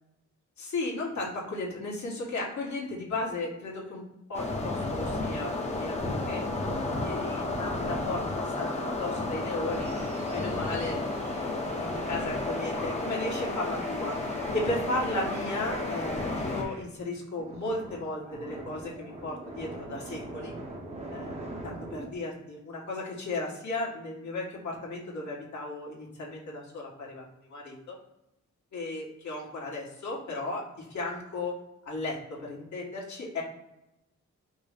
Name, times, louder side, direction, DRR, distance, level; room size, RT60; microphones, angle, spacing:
voice 1, 0.6-4.0 4.3-6.4 6.8-8.2 8.5-9.9 10.3-11.0 11.8-14.2 14.5-20.5 21.1-21.4 21.6-27.9 28.7-31.6 31.8-33.4, left 2 dB, 75° left, -3 dB, 1.5 m, -35 dB
sound 1, 4.3-16.6, left 2 dB, 25° left, 0.7 m, -32 dB
sound 2, 9.7-16.9 17.3-22.1, right 2 dB, 20° right, 0.7 m, -43 dB
5.3 x 2.1 x 4.8 m, 0.91 s
wide cardioid pair, 165°, 29 cm